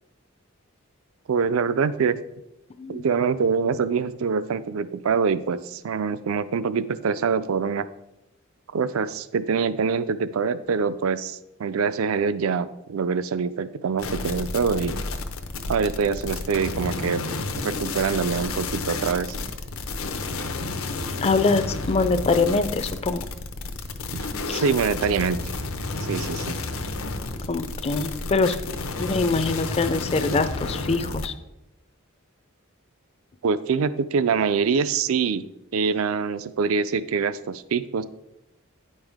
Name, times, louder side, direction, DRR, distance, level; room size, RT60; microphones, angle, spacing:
voice 1, 1.3-2.2 2.9-7.9 8.7-14.9 15.7-17.3 17.6-19.3 24.1-24.2 24.5-25.4 26.0-26.6 33.4-35.4 35.7-38.0, right 5 dB, 70° right, 14 dB, 0.4 m, -24 dB
sound 1, 14.0-31.3, left 3 dB, 75° left, 0.7 m, -31 dB
voice 2, 21.2-23.2 24.5-24.6 27.5-28.6 29.0-31.3, left 3 dB, 30° left, 11 dB, 0.4 m, -23 dB
9.4 x 5.4 x 3.5 m, 0.89 s
head